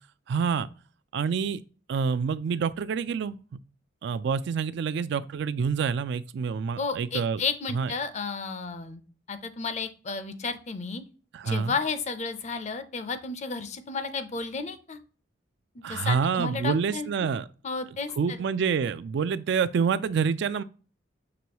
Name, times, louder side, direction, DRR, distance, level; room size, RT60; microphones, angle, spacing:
voice 1, 0.3-0.7 1.1-1.6 1.9-3.4 4.0-7.4 7.7-7.9 11.3-11.7 15.8-17.4 18.2-20.6, right 6 dB, 65° right, 0.3 m, -27 dB
voice 2, 6.8-9.0 9.3-11.0 11.4-15.0 15.7-17.3 17.6-18.4, left 4 dB, 40° left, 0.6 m, -32 dB
6.1 x 3.0 x 2.9 m
head